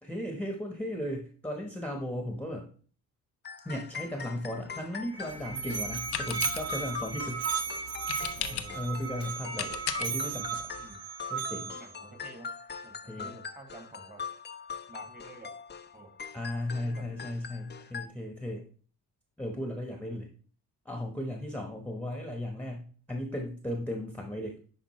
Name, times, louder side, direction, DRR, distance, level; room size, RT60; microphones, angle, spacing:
voice 1, 0.0-2.7 3.6-7.5 8.5-9.7 10.0-10.6 11.3-11.7 13.1-13.4 16.3-18.6 19.4-20.3 20.8-24.6, left 1 dB, 5° left, 2 dB, 1.1 m, -36 dB
sound 1, 3.4-18.1, left 6 dB, 30° left, 0.5 m, -43 dB
Musical instrument, 5.0-11.9, right 6 dB, 70° right, 0.9 m, -35 dB
sound 2, 5.3-10.9, left 11 dB, 90° left, 0.7 m, -40 dB
voice 2, 5.5-5.8 8.3-8.8 9.4-10.1 10.8-11.0 11.7-12.5 12.8-14.3 14.9-15.5 15.9-16.1 16.8-17.2 19.9-20.2, right 3 dB, 20° right, 5 dB, 1.8 m, -50 dB
10.5 x 3.8 x 3.1 m, 0.42 s
cardioid pair, 75°, 38 cm